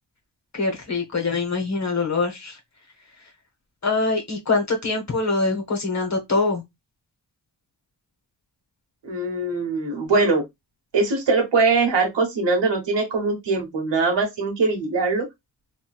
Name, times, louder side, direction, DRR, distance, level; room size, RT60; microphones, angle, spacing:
voice 1, 0.5-2.6 3.8-6.6, left 3 dB, 40° left, 1.1 m, -24 dB
voice 2, 9.0-10.4 10.9-15.3, right 3 dB, 75° right, 1.2 m, -22 dB
3.1 x 2.6 x 2.3 m
wide cardioid pair, 75°, 43 cm